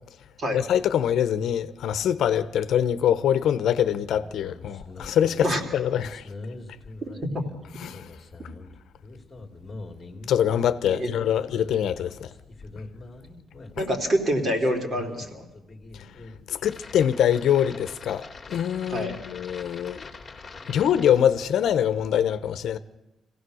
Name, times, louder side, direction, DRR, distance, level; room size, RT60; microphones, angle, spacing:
voice 1, 0.5-5.5 5.7-6.2 7.8-8.1 10.3-12.3 13.8-13.9 16.5-20.0 20.7-22.8, left 9 dB, 65° left, 1.0 m, -24 dB
sound 1, 4.1-21.1, left 3 dB, 20° left, 2.5 m, -44 dB
voice 2, 13.8-15.5 18.9-19.2, equal, 35° right, 3.2 m, -26 dB
25.5 x 16.5 x 6.4 m
cardioid pair, 165°, 0 cm